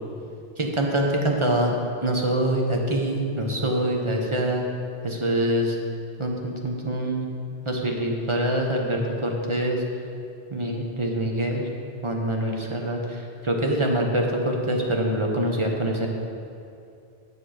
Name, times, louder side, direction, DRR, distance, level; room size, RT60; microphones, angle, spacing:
voice 1, 0.6-1.7 2.0-4.7 5.0-5.8 6.2-7.3 7.6-9.8 10.5-11.7 12.0-16.1, right 1 dB, 30° right, 0 dB, 0.9 m, -25 dB
8.4 x 7.1 x 4.9 m, 2.5 s
omnidirectional pair, 1.1 m